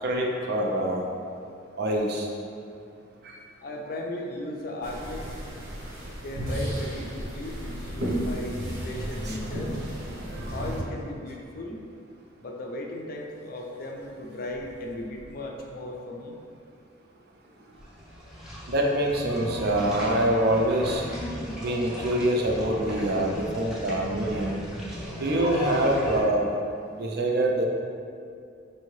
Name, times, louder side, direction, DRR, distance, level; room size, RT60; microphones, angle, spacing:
voice 1, 0.0-1.0 1.8-2.3 9.3-9.4 18.7-21.0 21.6-24.6 25.2-26.5 26.9-27.6, right 1 dB, 50° right, 0 dB, 0.4 m, -25 dB
voice 2, 3.6-5.4 6.2-9.8 10.5-11.8 12.4-16.4, left 1 dB, 45° left, 1 dB, 0.4 m, -36 dB
sound 1, 4.8-10.8, equal, 75° right, 0.9 m, -33 dB
sound 2, 17.7-26.2, equal, 5° right, 0.6 m, -36 dB
4.5 x 2.7 x 3.1 m, 2.5 s
head